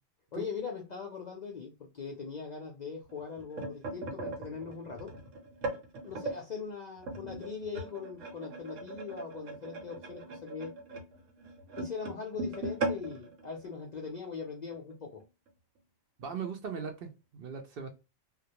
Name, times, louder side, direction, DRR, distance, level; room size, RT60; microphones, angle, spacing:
voice 1, 0.3-5.1 6.0-10.7 11.8-15.2, left 5 dB, 60° left, 0.4 m, -41 dB
sound 1, 3.1-6.4 7.0-14.3 14.7-14.9 15.2-15.5 16.2-16.3, right 2 dB, 90° right, 1.1 m, -39 dB
voice 2, 16.2-17.9, right 6 dB, 60° right, 0.7 m, -39 dB
2.3 x 2.1 x 2.8 m
omnidirectional pair, 1.3 m